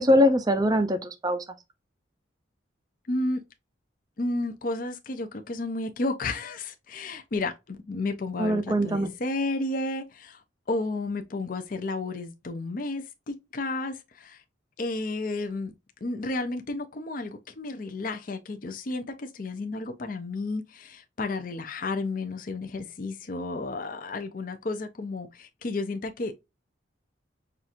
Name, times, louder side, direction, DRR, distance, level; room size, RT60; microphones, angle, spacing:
voice 1, 0.0-1.4 8.4-9.1, equal, 20° right, 0.4 m, -22 dB
voice 2, 3.1-3.4 4.2-10.4 10.7-14.4 14.8-15.7 16.0-26.4, left 2 dB, 45° left, 0.5 m, -32 dB
5.7 x 2.4 x 2.5 m
head